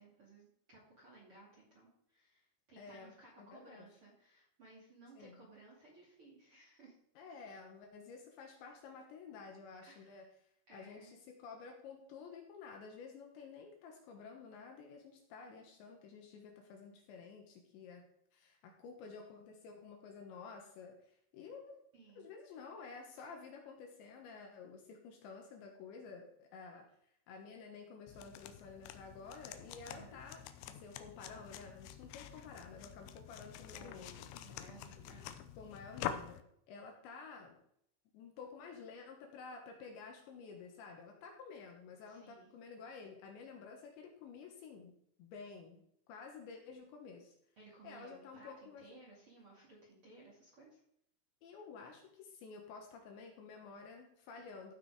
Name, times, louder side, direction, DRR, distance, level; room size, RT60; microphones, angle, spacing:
voice 1, 0.0-7.0 9.8-10.3 10.7-11.2 21.9-22.3 29.8-30.2 33.7-35.3 42.1-42.5 47.6-50.8, right 2 dB, 35° right, -4 dB, 2.3 m, -59 dB
voice 2, 2.8-3.9 5.2-5.4 7.2-10.3 10.7-18.0 18.3-21.8 22.2-26.9 27.3-30.4 30.7-34.2 35.6-36.4 36.7-37.6 38.1-47.4 47.8-48.9 51.4-54.7, left 5 dB, 70° left, 2 dB, 3.3 m, -52 dB
sound 1, 28.1-36.4, left 10 dB, 90° left, 2.6 m, -47 dB
15.0 x 6.1 x 4.9 m, 0.71 s
omnidirectional pair, 5.9 m